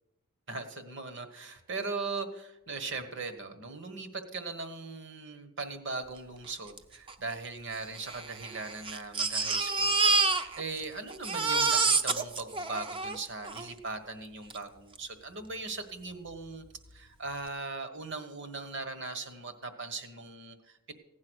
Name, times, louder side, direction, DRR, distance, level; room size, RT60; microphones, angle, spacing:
voice 1, 0.5-16.6 16.9-20.9, right 3 dB, 55° right, 9 dB, 1.4 m, -39 dB
Crying sobbing, 6.8-6.9 7.1-7.2 7.9-10.8 11.1-13.7 14.5-14.6 15.0-15.1, right 3 dB, 25° right, 0.6 m, -28 dB
16.0 x 9.6 x 6.3 m, 0.93 s
head